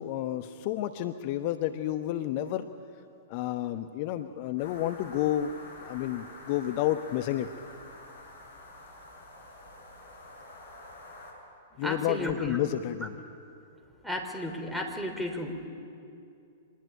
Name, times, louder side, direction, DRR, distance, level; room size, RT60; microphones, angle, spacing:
voice 1, 0.0-2.7 3.3-5.5 5.8-7.5 11.8-13.2, left 12 dB, 40° left, 9 dB, 1.0 m, -30 dB
sound 1, 4.6-11.3, left 2 dB, 60° left, 7.2 m, -48 dB
voice 2, 11.8-12.6 14.0-15.7, left 1 dB, 5° right, 4 dB, 3.6 m, -33 dB
26.0 x 20.0 x 10.0 m, 2.6 s
figure-of-eight pair, 105°, 0 cm